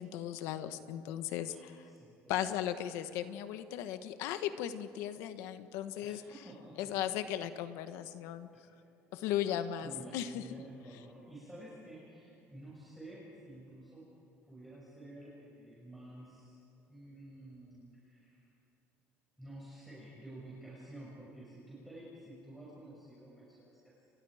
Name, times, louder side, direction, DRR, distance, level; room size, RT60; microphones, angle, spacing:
voice 1, 0.0-1.7 2.3-6.2 6.8-8.5 9.1-10.4, left 11 dB, 80° left, 10 dB, 1.3 m, -37 dB
voice 2, 1.4-2.5 6.0-6.9 8.5-8.7 9.8-14.1 14.5-16.6 16.9-18.5 19.4-23.9, right 1 dB, ahead, -7 dB, 6.5 m, -51 dB
29.5 x 25.0 x 5.1 m, 2.9 s
cardioid pair, 135°, 5 cm